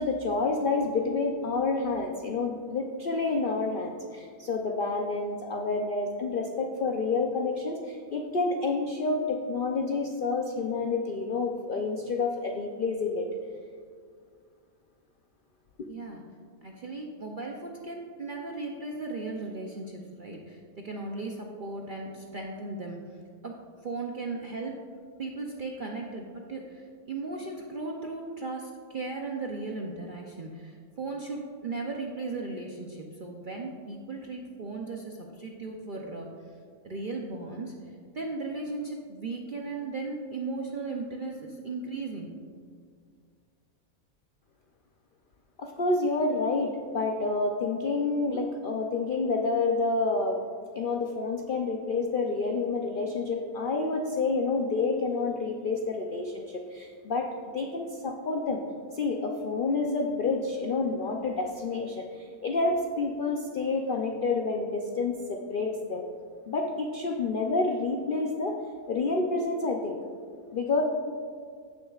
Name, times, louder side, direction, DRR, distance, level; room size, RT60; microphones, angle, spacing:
voice 1, 0.0-13.3 45.6-50.4 50.7-58.6 58.9-66.0 66.5-68.6 68.9-70.0 70.5-70.8, left 3 dB, 65° left, 2 dB, 0.5 m, -29 dB
voice 2, 15.9-16.2 16.6-23.0 23.4-23.6 23.8-24.8 25.2-36.3 36.8-42.4, right 3 dB, 55° right, 0 dB, 0.6 m, -36 dB
15.5 x 6.5 x 2.4 m, 2.1 s
omnidirectional pair, 1.6 m